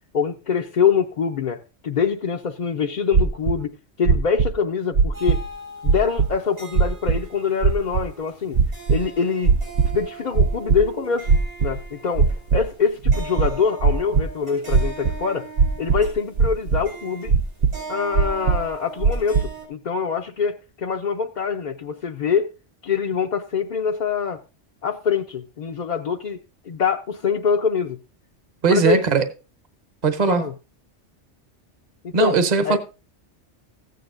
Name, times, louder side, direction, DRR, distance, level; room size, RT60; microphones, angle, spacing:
voice 1, 0.1-5.4 5.8-8.6 8.9-9.5 9.9-11.3 11.6-15.5 15.8-17.3 17.9-22.5 22.8-24.4 24.8-26.4 26.6-28.0 28.7-29.0 30.3-30.5 32.0-32.8, left 6 dB, 45° left, 0.6 m, -24 dB
sound 1, 3.1-3.6 4.0-4.5 4.9-5.5 5.9-6.3 6.8-7.2 7.6-8.0 8.5-9.0 9.4-10.0 10.3-10.8 11.3-11.8 12.2-12.6 13.0-14.2 14.7-15.1 15.6-16.1 16.4-16.8 17.3-17.7 18.1-18.7 19.0-19.4, right 5 dB, 60° right, 0.7 m, -18 dB
sound 2, 5.1-19.7, right 3 dB, 75° right, 5.9 m, -40 dB
voice 2, 28.6-29.2 30.0-30.4 32.1-32.8, right 5 dB, 40° right, 1.2 m, -19 dB
15.0 x 9.3 x 2.5 m
omnidirectional pair, 1.2 m